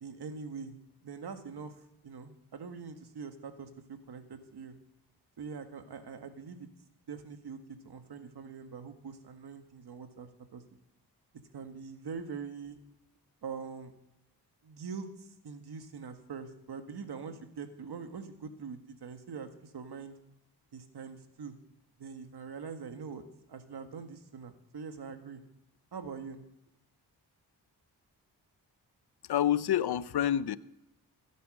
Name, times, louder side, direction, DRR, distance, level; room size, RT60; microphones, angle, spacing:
voice 1, 0.0-0.8 1.0-4.7 5.4-6.7 7.1-10.6 11.5-12.8 13.4-13.9 14.6-20.1 20.7-21.6 22.0-23.2 23.5-25.4 25.9-26.4, right 5 dB, 65° right, 7 dB, 1.8 m, -43 dB
voice 2, 29.3-30.6, left 10 dB, 65° left, 17 dB, 0.7 m, -27 dB
16.0 x 9.3 x 6.5 m, 0.89 s
cardioid pair, 60°, 41 cm